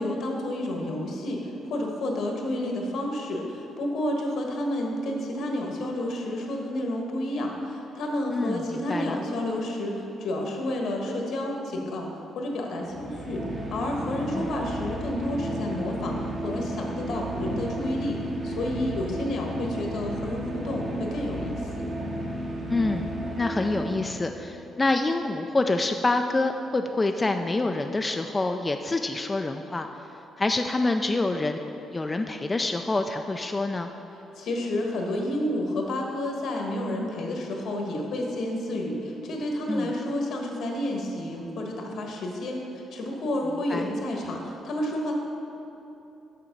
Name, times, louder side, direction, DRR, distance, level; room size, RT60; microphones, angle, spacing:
voice 1, 0.0-13.4 13.7-16.2 16.4-21.7 34.4-45.1, left 1 dB, 75° left, 1 dB, 1.3 m, -30 dB
voice 2, 8.3-9.2 14.3-14.5 22.7-29.9 30.4-31.6 31.9-33.9 39.7-39.9 43.7-43.9, left 2 dB, 20° left, 5 dB, 0.3 m, -27 dB
sound 1, 12.8-24.5, right 1 dB, 50° right, 1.2 m, -33 dB
6.8 x 6.0 x 5.2 m, 3.0 s
cardioid pair, 90°, 0 cm